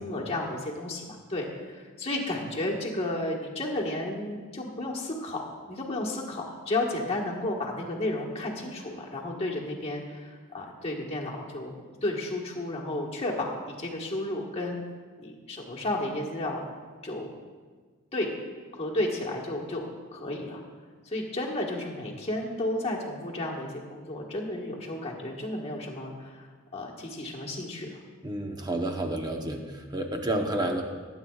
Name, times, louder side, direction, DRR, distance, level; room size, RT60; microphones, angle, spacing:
voice 1, 0.0-11.7 12.0-14.8 15.2-16.6 17.0-17.3 18.1-18.3 18.8-19.9 20.1-20.6 21.0-26.5 26.7-27.9, left 1 dB, 25° left, -2 dB, 1.4 m, -32 dB
voice 2, 28.2-30.8, right 1 dB, 20° right, 3 dB, 0.9 m, -30 dB
19.5 x 9.1 x 2.4 m, 1.5 s
head